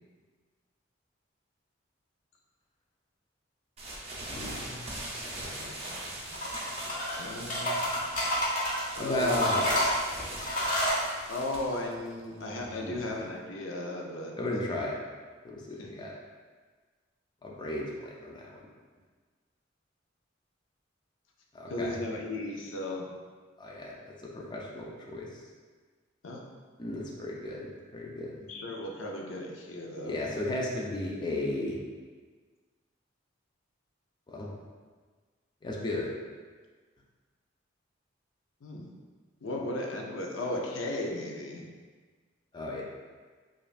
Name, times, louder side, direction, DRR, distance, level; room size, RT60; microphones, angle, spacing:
sound 1, 3.8-13.4, right 1 dB, 30° right, 0.6 m, -41 dB
voice 1, 4.3-5.1 9.0-9.9 12.8-13.0 14.4-15.0 15.4-16.1 17.4-18.5 21.5-22.0 23.6-25.3 26.8-28.4 30.0-31.8 34.3-34.5 35.6-36.1 42.5-42.8, left 1 dB, 25° left, -3 dB, 0.4 m, -34 dB
voice 2, 5.6-6.5 7.2-7.8 9.0-9.5 11.3-14.3 15.8-15.9 21.7-23.1 26.2-26.4 28.4-30.2 38.6-38.9 39.4-41.6, left 1 dB, 75° left, 0 dB, 0.5 m, -36 dB
sound 2, 6.3-7.2 7.5-8.8 9.3-11.0, equal, 45° left, 1.1 m, -29 dB
5.0 x 2.5 x 2.4 m, 1.5 s
head